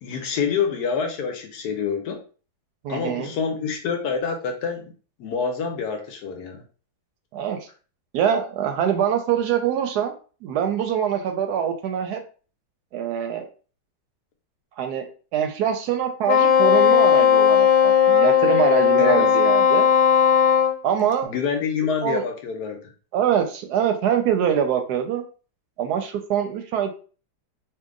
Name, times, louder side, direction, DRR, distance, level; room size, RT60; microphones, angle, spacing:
voice 1, 0.0-2.2 2.9-4.9 5.2-6.6 19.0-19.3 21.2-22.9, left 6 dB, 70° left, 4 dB, 1.1 m, -26 dB
voice 2, 2.8-3.3 7.3-7.7 8.1-10.1 10.4-12.2 12.9-13.5 14.8-15.1 15.3-19.9 20.8-21.3 22.0-22.3 23.1-25.2 25.8-26.9, right 9 dB, 75° right, 5 dB, 1.0 m, -24 dB
Wind instrument woodwind instrument, 16.3-20.8, left 8 dB, 90° left, 1.3 m, -16 dB
2.8 x 2.5 x 3.6 m, 0.38 s
omnidirectional pair, 1.9 m